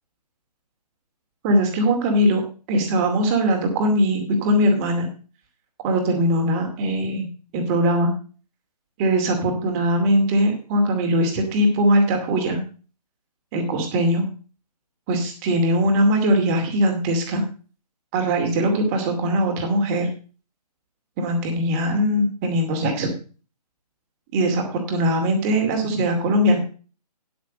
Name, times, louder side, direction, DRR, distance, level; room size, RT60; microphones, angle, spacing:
voice 1, 1.4-2.4 2.7-5.1 5.8-7.3 7.5-8.1 9.0-12.6 13.5-14.2 15.1-17.4 18.1-20.1 21.2-23.1 24.3-26.6, equal, 20° right, 4 dB, 2.4 m, -21 dB
9.6 x 8.5 x 5.1 m, 0.37 s
figure-of-eight pair, 145°, 21 cm